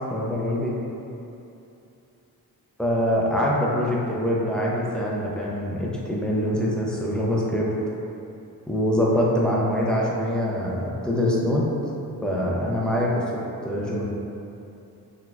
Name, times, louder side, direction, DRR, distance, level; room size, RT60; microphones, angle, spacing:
voice 1, 0.1-0.7 2.8-7.7 8.7-11.7 12.2-13.2 13.6-14.1, equal, ahead, -5 dB, 0.4 m, -24 dB
4.0 x 2.2 x 2.3 m, 2.7 s
wide cardioid pair, 110°, 39 cm